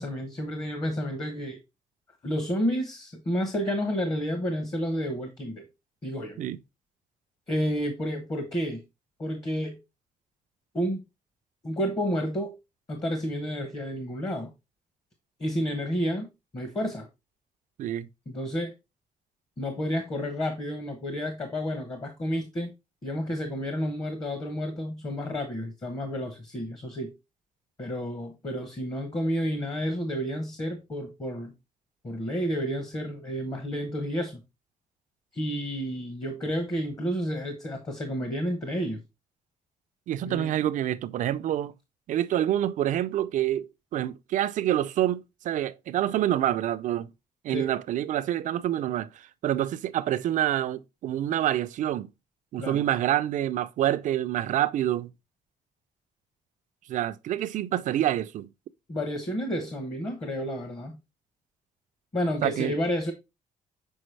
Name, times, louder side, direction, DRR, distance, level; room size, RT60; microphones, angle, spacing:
voice 1, 0.0-1.6 2.2-5.7 6.0-6.4 7.5-8.8 9.2-9.8 10.7-11.0 11.6-12.6 12.9-14.5 15.4-17.1 18.3-18.7 19.6-22.7 23.0-27.1 27.8-31.5 32.0-34.4 35.3-39.0 40.3-40.5 47.5-47.7 52.6-52.8 58.9-61.0 62.1-63.1, equal, 25° left, 0.9 m, -30 dB
voice 2, 40.1-41.7 42.1-47.1 47.4-52.1 52.5-55.1 56.9-58.5 62.4-62.7, right 12 dB, 60° right, 0.4 m, -27 dB
6.3 x 4.7 x 3.2 m
cardioid pair, 165°, 14 cm